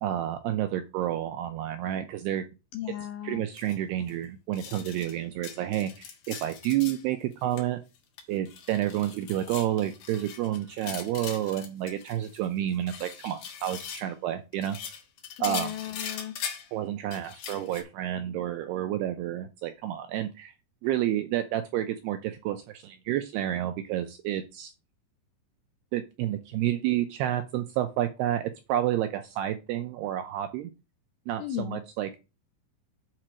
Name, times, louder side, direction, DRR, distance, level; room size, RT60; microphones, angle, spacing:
voice 1, 0.0-2.4 3.2-7.8 8.3-14.8 15.4-15.7 16.7-20.5 20.8-24.7 25.9-30.7 31.3-32.2, right 12 dB, 80° right, 8 dB, 2.4 m, -30 dB
voice 2, 2.7-3.5 15.4-16.4 31.4-31.8, left 12 dB, 80° left, 6 dB, 2.3 m, -35 dB
sound 1, 3.5-3.8 4.1-4.2 4.5-5.2 5.4-7.0 7.3-7.6 7.9-12.5 12.7-14.1 14.5-16.7 17.1-17.8, left 8 dB, 60° left, 2.6 m, -41 dB
7.7 x 4.5 x 6.2 m, 0.28 s
omnidirectional pair, 5.3 m